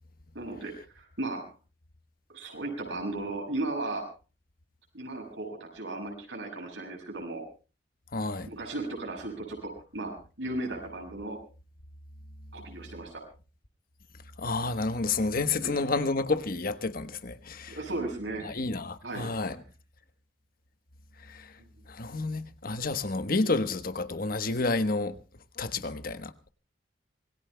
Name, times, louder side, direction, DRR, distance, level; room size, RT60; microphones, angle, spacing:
voice 1, 0.3-1.4 2.3-4.0 4.9-7.4 8.5-11.4 12.5-13.2 15.6-15.7 17.7-18.5 19.0-19.3, right 2 dB, 85° right, 7.3 m, -36 dB
voice 2, 8.1-8.5 14.4-17.8 18.4-19.6 21.3-21.5 21.9-25.2 25.6-26.5, left 3 dB, 55° left, 1.2 m, -30 dB
26.5 x 20.5 x 2.2 m
head